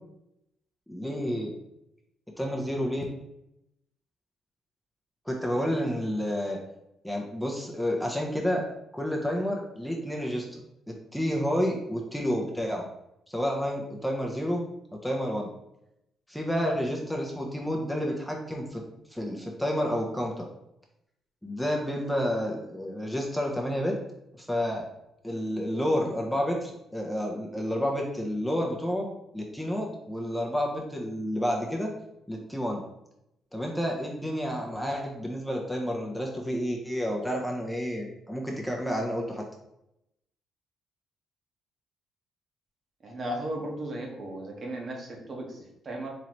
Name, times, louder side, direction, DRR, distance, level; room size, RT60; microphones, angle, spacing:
voice 1, 0.9-1.5 2.4-3.0 5.3-6.6 7.0-8.6 8.9-10.6 10.9-12.9 13.3-14.6 15.0-15.5 16.3-18.8 19.1-20.4 21.4-24.0 24.3-24.8 25.2-29.1 29.3-31.9 32.3-32.8 33.5-39.4, equal, 5° left, -1 dB, 0.7 m, -30 dB
voice 2, 43.0-46.1, right 1 dB, 45° right, 0 dB, 1.1 m, -36 dB
3.9 x 3.0 x 3.0 m, 0.82 s
cardioid pair, 90°, 0 cm